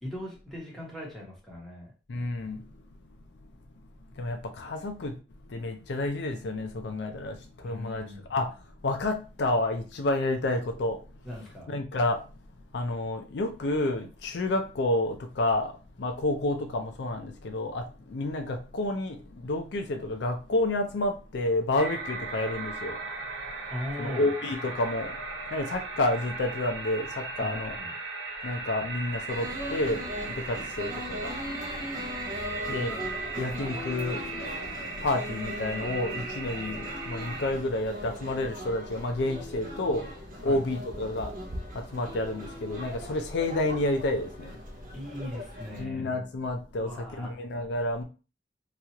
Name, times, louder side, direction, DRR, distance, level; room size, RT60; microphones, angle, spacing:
voice 1, 0.0-1.9 7.6-8.3 11.2-11.7 23.7-24.3 27.4-27.9 40.4-40.6 44.9-46.1 46.8-47.3, left 1 dB, ahead, 1.0 m, -39 dB
voice 2, 2.1-2.6 4.1-8.0 8.3-11.0 11.7-12.2 12.7-15.7 16.0-23.0 24.0-25.2 25.5-27.7 28.4-31.3 32.5-33.0 33.4-34.2 35.0-41.3 41.7-44.6 45.8-48.0, left 2 dB, 65° left, 0.4 m, -30 dB
sound 1, 21.8-37.5, right 3 dB, 80° right, 0.7 m, -37 dB
sound 2, 29.3-45.8, equal, 50° right, 0.6 m, -39 dB
3.0 x 2.4 x 2.8 m
head